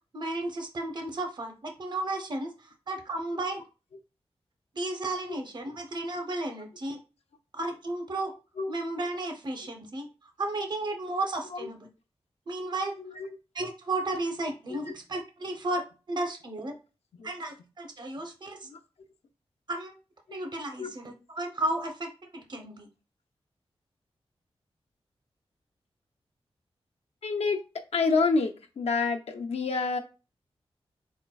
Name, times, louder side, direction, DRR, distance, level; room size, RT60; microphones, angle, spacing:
voice 1, 0.1-2.5 2.9-3.6 4.7-7.0 7.5-8.3 8.7-10.1 10.4-11.9 12.5-12.9 13.5-16.7 17.2-18.7 19.7-20.0 20.3-22.9, right 2 dB, 45° right, 5 dB, 0.8 m, -33 dB
voice 2, 13.0-13.4 14.7-14.9 17.1-17.3 18.6-18.8 20.3-20.4 20.8-20.9 27.2-27.6 27.9-30.0, left 4 dB, 85° left, 4 dB, 0.7 m, -28 dB
4.5 x 3.9 x 2.3 m, 0.31 s
wide cardioid pair, 125°, 10 cm